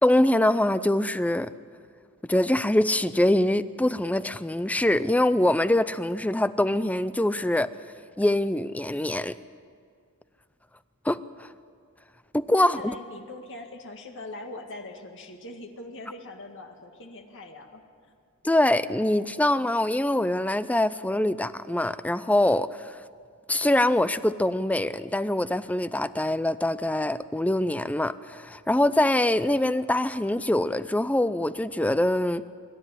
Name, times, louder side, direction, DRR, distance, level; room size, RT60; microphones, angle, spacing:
voice 1, 0.0-1.5 2.2-7.7 8.2-9.4 11.0-11.5 12.3-12.8 18.4-23.0 23.5-32.4, left 1 dB, 5° left, 14 dB, 0.5 m, -24 dB
voice 2, 12.6-17.8, left 2 dB, 60° left, 3 dB, 2.0 m, -42 dB
25.5 x 12.5 x 9.8 m, 2.1 s
head